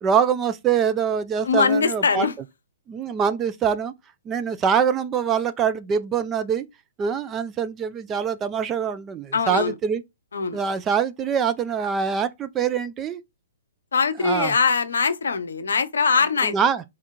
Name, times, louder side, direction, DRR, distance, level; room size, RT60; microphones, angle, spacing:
voice 1, 0.0-2.3 2.9-3.9 4.3-6.7 7.0-10.0 10.5-13.2 14.2-14.5 16.4-16.8, right 7 dB, 20° right, 0.4 m, -24 dB
voice 2, 1.4-2.3 9.3-9.7 10.3-10.6 13.9-16.5, left 5 dB, 65° left, 0.6 m, -22 dB
3.6 x 3.5 x 4.2 m
figure-of-eight pair, 120°, 0 cm